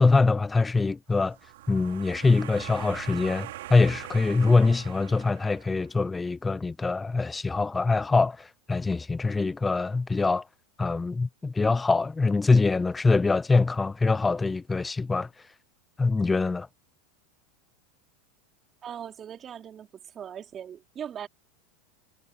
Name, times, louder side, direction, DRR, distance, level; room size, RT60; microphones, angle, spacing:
voice 1, 0.0-1.4 1.7-10.4 10.8-15.3 16.0-16.7, left 3 dB, 15° left, 0.7 m, -24 dB
sound 1, 1.2-6.0, right 16 dB, 70° right, 4.7 m, -42 dB
voice 2, 18.8-19.9 20.1-21.3, right 9 dB, 30° right, 3.9 m, -39 dB
hypercardioid pair, 90°, 0 cm